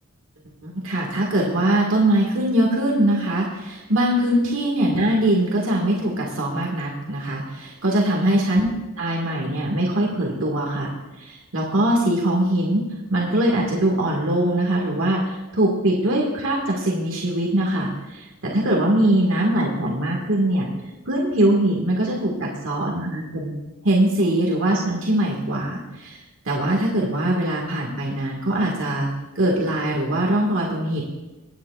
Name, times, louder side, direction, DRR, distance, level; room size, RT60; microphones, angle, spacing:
voice 1, 0.6-8.7 9.0-10.9 11.2-12.8 13.1-20.7 21.1-23.5 23.8-26.2 26.5-29.1 29.4-31.0, right 1 dB, 65° right, -2 dB, 2.0 m, -22 dB
24.0 x 9.5 x 2.5 m, 1.1 s
head